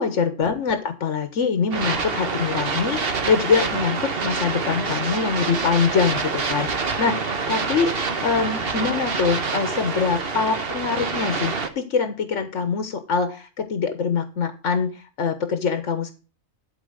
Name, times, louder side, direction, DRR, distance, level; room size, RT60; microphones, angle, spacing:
voice 1, 0.0-16.1, left 5 dB, 80° left, 9 dB, 1.5 m, -24 dB
sound 1, 1.7-11.7, right 4 dB, 50° right, 1.4 m, -26 dB
12.5 x 4.3 x 7.9 m, 0.35 s
omnidirectional pair, 1.2 m